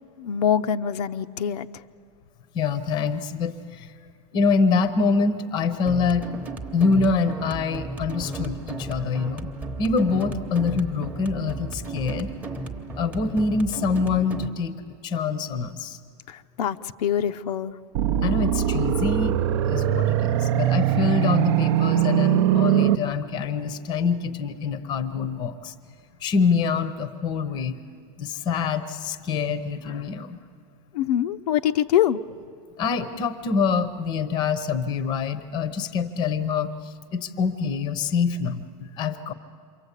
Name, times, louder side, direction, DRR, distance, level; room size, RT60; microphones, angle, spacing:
voice 1, 0.2-1.7 16.3-17.7 30.9-32.2, left 10 dB, 75° left, 8 dB, 0.7 m, -24 dB
voice 2, 2.5-3.9 4.3-6.3 6.7-9.5 9.8-12.3 12.9-16.0 18.2-19.4 19.7-25.7 26.2-27.8 28.2-30.4 32.8-39.3, left 5 dB, 20° left, 12 dB, 0.8 m, -25 dB
sound 1, 5.8-14.5, right 3 dB, 5° right, 0.9 m, -35 dB
sound 2, 17.9-22.9, right 11 dB, 45° right, 0.6 m, -21 dB
28.0 x 23.5 x 8.2 m, 2.2 s
supercardioid pair, 175°, 20 cm